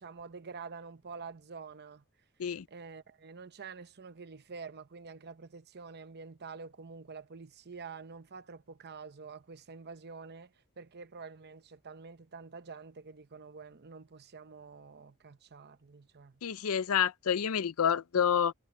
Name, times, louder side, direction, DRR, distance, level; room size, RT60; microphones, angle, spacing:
voice 1, 0.0-2.0 2.7-16.4, right 5 dB, 50° right, 0.8 m, -47 dB
voice 2, 16.4-18.5, left 8 dB, 70° left, 0.5 m, -28 dB
head